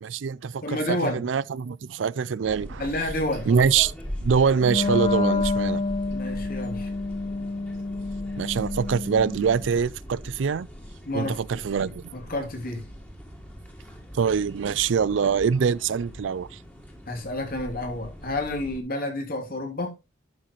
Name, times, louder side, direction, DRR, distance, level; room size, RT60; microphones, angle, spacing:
voice 1, 0.0-2.9 3.5-3.9 4.2-5.8 8.4-10.7 11.1-12.1 14.1-16.5, right 6 dB, 75° right, 0.4 m, -24 dB
voice 2, 0.6-1.2 2.8-3.5 6.1-6.9 11.0-12.8 17.1-19.9, left 1 dB, 50° left, 2.9 m, -30 dB
sound 1, 2.4-18.8, equal, 10° left, 2.4 m, -40 dB
Wind instrument woodwind instrument, 4.6-9.7, left 3 dB, 30° left, 0.5 m, -28 dB
11.5 x 6.4 x 3.0 m
head